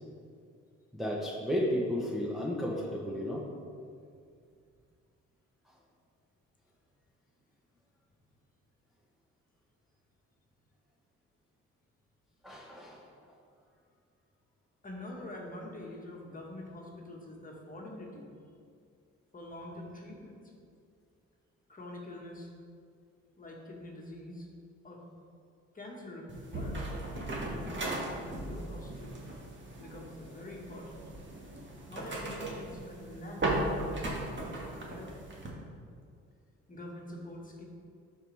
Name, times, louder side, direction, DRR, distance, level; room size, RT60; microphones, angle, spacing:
voice 1, 0.9-3.4 12.4-13.0, equal, ahead, -4 dB, 1.1 m, -33 dB
voice 2, 14.8-18.2 19.3-20.4 21.7-22.5 23.4-24.5 24.8-25.0 25.7-27.9 28.3-29.3 29.8-31.0 31.9-35.2 36.7-37.6, left 1 dB, 25° left, -1 dB, 1.7 m, -45 dB
sound 1, 26.3-35.5, right 1 dB, 40° right, 1.8 m, -37 dB
11.5 x 4.7 x 3.5 m, 2.3 s
cardioid pair, 90°, 30 cm